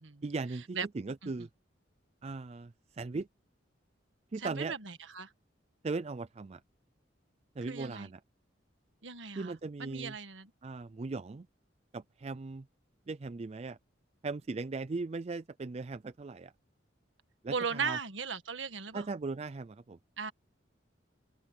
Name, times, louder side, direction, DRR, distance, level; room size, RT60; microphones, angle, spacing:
voice 1, 0.2-1.5 2.2-3.3 4.3-4.7 5.8-6.6 7.6-8.2 9.4-10.2 10.6-11.5 11.9-12.7 13.1-13.8 14.2-16.5 17.4-18.0 18.9-20.0, right 3 dB, 35° right, 0.4 m, -38 dB
voice 2, 4.4-4.8 5.2-5.3 7.7-8.1 9.0-9.5 9.8-10.5 17.5-19.0 20.2-20.3, right 5 dB, 85° right, 1.6 m, -37 dB
open air
head